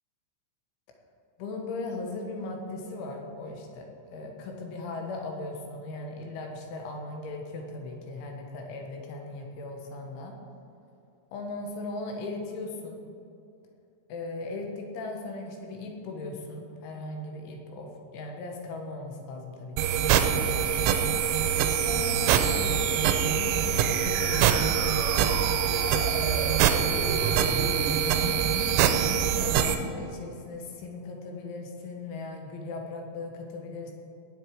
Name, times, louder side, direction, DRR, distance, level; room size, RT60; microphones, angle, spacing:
voice 1, 1.4-10.4 11.3-13.0 14.1-20.9 21.8-28.5 29.4-33.9, left 2 dB, 70° left, 2 dB, 3.6 m, -38 dB
sound 1, 19.8-29.8, right 8 dB, 85° right, 3.2 m, -24 dB
Wind instrument woodwind instrument, 24.2-27.9, left 7 dB, 90° left, 2.6 m, -41 dB
19.0 x 8.1 x 4.8 m, 2.5 s
omnidirectional pair, 5.9 m